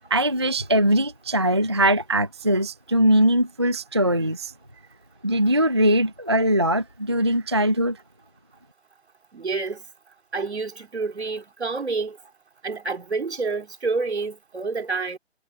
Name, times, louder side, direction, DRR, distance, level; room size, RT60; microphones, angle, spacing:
voice 1, 0.1-4.5 5.2-8.0, right 1 dB, 25° right, 0.4 m, -21 dB
voice 2, 9.3-9.8 10.3-12.2 12.6-15.2, right 4 dB, 70° right, 3.3 m, -28 dB
figure-of-eight pair, 150°, 34 cm